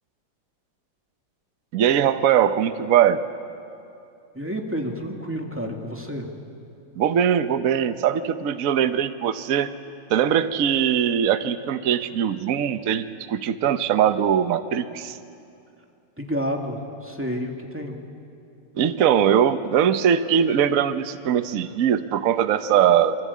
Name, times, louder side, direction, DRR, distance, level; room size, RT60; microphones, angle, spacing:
voice 1, 1.7-3.2 7.0-9.7 10.1-15.2 18.8-23.2, right 9 dB, 55° right, 10 dB, 1.1 m, -21 dB
voice 2, 4.3-6.3 16.2-18.0, equal, 5° right, 1 dB, 2.3 m, -30 dB
27.0 x 23.5 x 8.5 m, 2.6 s
omnidirectional pair, 2.0 m